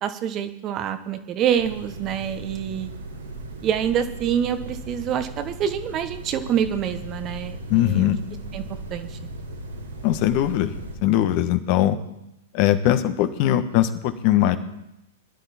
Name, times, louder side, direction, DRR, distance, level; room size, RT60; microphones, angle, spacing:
voice 1, 0.0-2.9 3.6-8.1 8.5-9.2, right 9 dB, 30° right, 9 dB, 1.2 m, -26 dB
sound 1, 1.6-11.0, right 2 dB, 80° right, 3.5 m, -37 dB
voice 2, 7.7-8.2 10.0-10.7 11.0-12.0 12.5-14.6, left 12 dB, 45° left, 9 dB, 1.3 m, -20 dB
20.5 x 11.5 x 4.4 m, 0.88 s
figure-of-eight pair, 105°, 0 cm